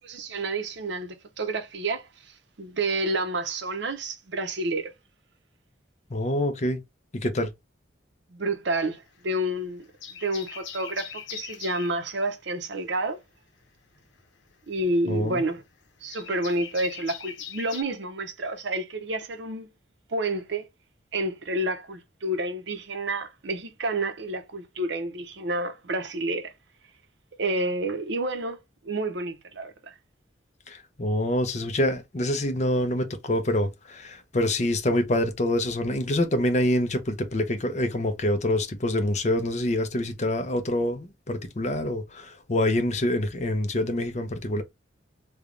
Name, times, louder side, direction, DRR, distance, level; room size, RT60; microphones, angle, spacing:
voice 1, 0.0-2.1 2.6-4.9 8.3-9.8 10.2-13.2 14.7-15.6 16.0-19.7 20.1-20.7 21.1-26.5 27.4-28.6 28.8-29.9, right 2 dB, 70° right, 0.7 m, -29 dB
voice 2, 6.1-6.8 7.1-7.5 15.1-15.4 30.7-44.6, left 1 dB, 35° left, 0.6 m, -26 dB
sound 1, 8.8-9.5 9.8-12.0 13.6-17.8, left 7 dB, 80° left, 0.9 m, -41 dB
3.3 x 2.3 x 3.7 m
head